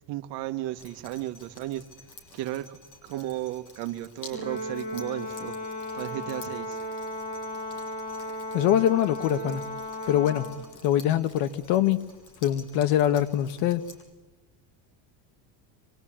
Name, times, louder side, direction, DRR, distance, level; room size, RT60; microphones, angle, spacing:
voice 1, 0.1-1.9 2.3-6.8, right 15 dB, 60° right, 1.6 m, -34 dB
Drip, 0.8-14.0, left 3 dB, 40° left, 7.7 m, -51 dB
Brass instrument, 4.3-10.7, left 1 dB, 20° left, 5.7 m, -35 dB
voice 2, 8.5-9.6 10.1-10.5 10.8-12.1 12.4-13.8, left 11 dB, 65° left, 1.5 m, -23 dB
26.0 x 24.5 x 8.9 m
cardioid pair, 155°, 46 cm